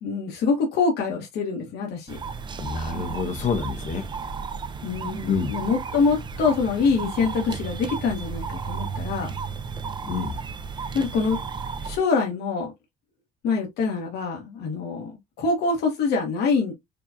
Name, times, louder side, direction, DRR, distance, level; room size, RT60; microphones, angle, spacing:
voice 1, 0.0-2.2 4.8-9.3 10.9-11.4 11.8-12.7 13.4-16.7, left 4 dB, 75° left, 1.5 m, -25 dB
sound 1, 2.1-12.0, right 5 dB, 25° right, 0.6 m, -33 dB
voice 2, 2.6-4.1 5.3-5.5 10.0-10.4, left 5 dB, 45° left, 0.8 m, -27 dB
5.0 x 2.4 x 2.7 m
cardioid pair, 110°, 17 cm